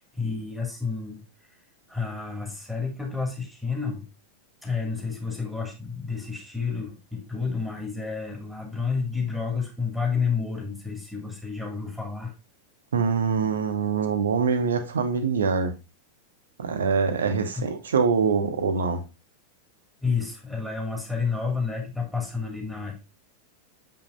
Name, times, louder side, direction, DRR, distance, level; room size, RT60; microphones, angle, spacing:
voice 1, 0.1-1.2 1.9-4.1 4.6-12.3 17.5-17.7 20.0-23.0, left 5 dB, 5° left, 2.4 m, -30 dB
voice 2, 12.9-15.7 16.6-19.0, right 5 dB, 65° right, 0.9 m, -24 dB
7.0 x 5.7 x 2.6 m
figure-of-eight pair, 90°, 0 cm